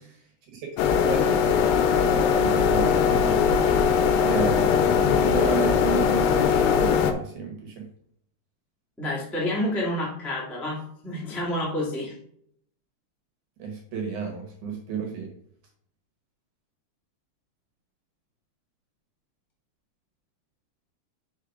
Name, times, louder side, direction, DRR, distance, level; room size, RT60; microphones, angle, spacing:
voice 1, 0.5-1.4 2.3-3.4 4.2-7.8 13.6-15.3, right 6 dB, 65° right, 1 dB, 2.2 m, -32 dB
sound 1, 0.8-7.1, left 7 dB, 90° left, 2.8 m, -21 dB
voice 2, 9.0-12.1, left 1 dB, ahead, -6 dB, 0.6 m, -29 dB
6.5 x 4.1 x 4.9 m, 0.66 s
omnidirectional pair, 4.7 m